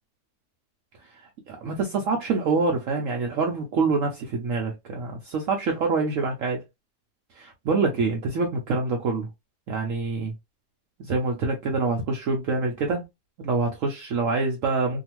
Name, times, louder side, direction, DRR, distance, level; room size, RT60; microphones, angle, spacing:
voice 1, 1.5-6.6 7.4-9.3 9.7-10.3 11.0-13.0 13.4-15.0, right 4 dB, 65° right, 0.9 m, -26 dB
2.7 x 2.4 x 2.9 m
omnidirectional pair, 1.7 m